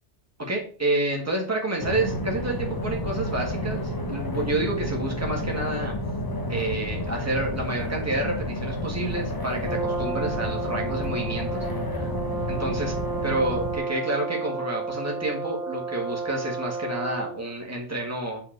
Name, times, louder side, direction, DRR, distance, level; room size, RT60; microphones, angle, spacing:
voice 1, 0.4-5.9 6.5-11.6 11.9-12.1 12.5-12.9 13.2-18.4, right 1 dB, 15° right, -1 dB, 1.6 m, -29 dB
sound 1, 1.8-13.8, equal, 20° left, 0.9 m, -30 dB
Brass instrument, 9.6-17.4, right 4 dB, 55° right, 2.3 m, -32 dB
5.0 x 4.2 x 5.7 m, 0.41 s
omnidirectional pair, 1.2 m